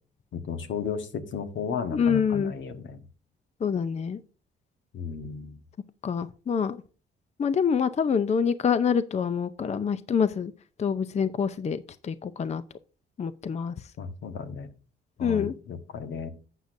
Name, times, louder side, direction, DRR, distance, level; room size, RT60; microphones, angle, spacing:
voice 1, 0.3-3.0 4.9-5.6 14.0-14.7 15.2-16.3, left 6 dB, 70° left, 8 dB, 1.4 m, -34 dB
voice 2, 1.9-2.5 3.6-4.2 6.0-6.8 7.4-10.5 10.8-12.6 13.2-13.7 15.2-15.5, left 6 dB, 35° left, 13 dB, 0.5 m, -26 dB
11.5 x 8.2 x 2.6 m, 0.37 s
cardioid pair, 90°, 20 cm